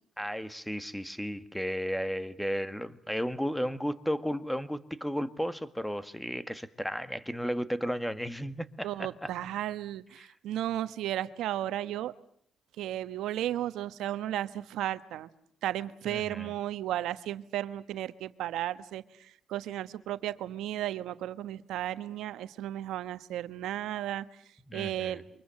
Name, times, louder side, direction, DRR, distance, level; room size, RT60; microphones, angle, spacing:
voice 1, 0.2-9.3 10.2-10.3 16.0-16.5 24.7-25.2, equal, 5° left, 12 dB, 1.6 m, -34 dB
voice 2, 8.8-12.1 12.8-15.3 15.6-24.2 24.7-25.2, right 13 dB, 85° right, 13 dB, 1.2 m, -34 dB
29.0 x 24.5 x 7.7 m, 0.62 s
cardioid pair, 90°, 0 cm